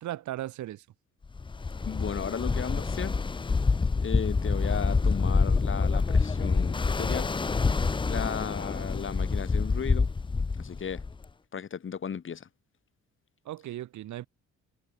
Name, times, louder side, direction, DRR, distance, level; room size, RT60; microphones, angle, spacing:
voice 1, 0.0-0.9 13.4-14.3, right 13 dB, 70° right, 1.1 m, -37 dB
Ocean, 1.4-11.2, left 4 dB, 15° left, 0.5 m, -27 dB
voice 2, 1.9-3.2 4.0-7.3 8.1-10.1 10.6-11.0 11.5-12.5, left 7 dB, 40° left, 1.9 m, -35 dB
cardioid pair, 90°, 30 cm